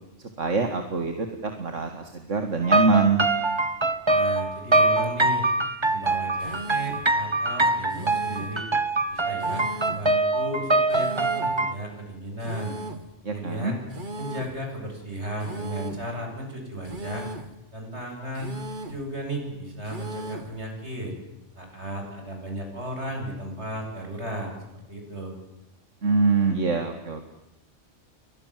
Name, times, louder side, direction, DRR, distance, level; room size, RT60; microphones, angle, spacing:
voice 1, 0.4-3.3 13.2-13.7 26.0-27.3, right 4 dB, 85° right, 6 dB, 2.5 m, -24 dB
sound 1, 2.6-11.7, right 2 dB, 25° right, 1.4 m, -24 dB
voice 2, 4.0-5.4 5.9-8.6 9.1-12.7 13.3-13.8 14.2-17.3 17.7-18.5 18.9-21.1 21.6-24.5 24.9-25.4, equal, 65° right, 2 dB, 8.2 m, -35 dB
sound 2, 6.4-7.1 7.9-8.6 9.4-10.1 10.9-11.6 12.4-13.1 13.9-14.6 15.4-16.1 16.9-17.6 18.4-19.1 19.9-20.6, right 1 dB, 40° right, 2.1 m, -37 dB
30.0 x 24.5 x 7.7 m, 0.92 s
omnidirectional pair, 1.3 m